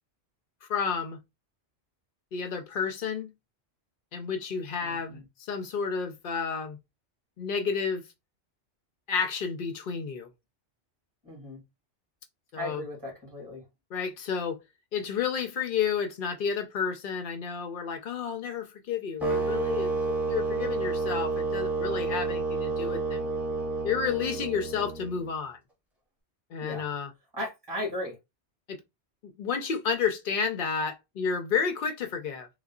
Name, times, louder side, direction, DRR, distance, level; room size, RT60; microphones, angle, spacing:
voice 1, 0.6-1.2 2.3-3.3 4.1-6.8 7.4-8.0 9.1-10.3 12.5-12.8 13.9-14.6 14.9-23.2 23.8-25.6 26.5-27.1 28.7-28.8 29.2-32.5, left 6 dB, 60° left, 0.6 m, -31 dB
voice 2, 4.8-5.2 11.2-11.6 12.6-13.6 26.6-26.9 27.4-28.2, left 1 dB, 20° right, 2.1 m, -36 dB
sound 1, 19.2-25.3, right 3 dB, ahead, 0.7 m, -30 dB
3.8 x 2.1 x 2.3 m
omnidirectional pair, 1.2 m